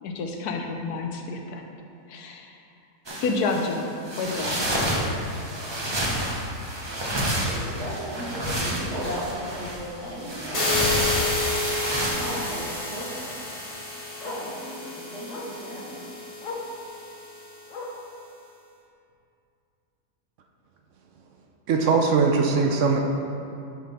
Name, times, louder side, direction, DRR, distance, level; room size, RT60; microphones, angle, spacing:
voice 1, 0.0-1.6 2.1-2.6 3.2-4.6, left 3 dB, 75° left, 3 dB, 1.2 m, -29 dB
sound 1, 3.1-12.1, equal, 20° right, 0.7 m, -29 dB
Bark, 4.7-4.8 5.2-5.4 5.7-5.8 6.1-6.2 7.6-7.7 10.2-10.3 11.1-11.4 12.2-12.5 13.7-13.8 14.2-14.5 15.3-15.6 16.4-16.7 17.7-18.1 19.1-19.2, left 2 dB, 55° left, 1.2 m, -38 dB
voice 2, 7.4-10.8 12.1-13.3 14.2-16.0, equal, 85° right, -8 dB, 2.6 m, -35 dB
sound 2, 10.5-17.4, left 2 dB, 40° left, 1.5 m, -30 dB
voice 3, 21.7-23.0, right 4 dB, 60° right, 2 dB, 0.9 m, -20 dB
7.1 x 5.9 x 4.1 m, 2.6 s
omnidirectional pair, 1.7 m